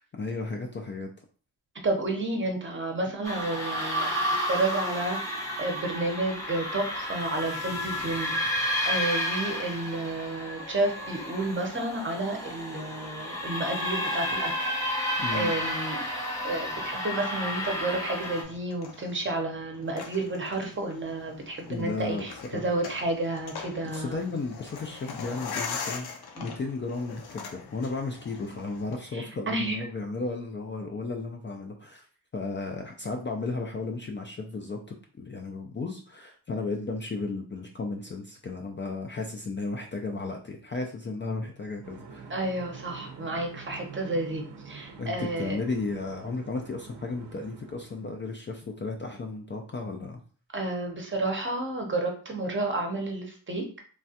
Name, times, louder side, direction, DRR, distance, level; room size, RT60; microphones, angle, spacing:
voice 1, 0.1-1.1 15.2-15.5 21.7-22.7 23.8-32.1 32.3-42.3 45.0-50.2, left 3 dB, 30° left, 2 dB, 0.4 m, -34 dB
voice 2, 1.8-16.0 16.4-24.2 26.4-26.5 29.1-29.8 42.3-45.6 50.5-53.8, right 2 dB, 30° right, 2 dB, 0.7 m, -31 dB
sound 1, 3.2-18.4, equal, 10° left, 0.8 m, -31 dB
sound 2, 18.2-29.0, left 5 dB, 70° left, 0.7 m, -41 dB
sound 3, 41.8-48.1, right 5 dB, 85° right, 0.6 m, -46 dB
3.2 x 2.3 x 2.7 m, 0.41 s
wide cardioid pair, 110°, 40 cm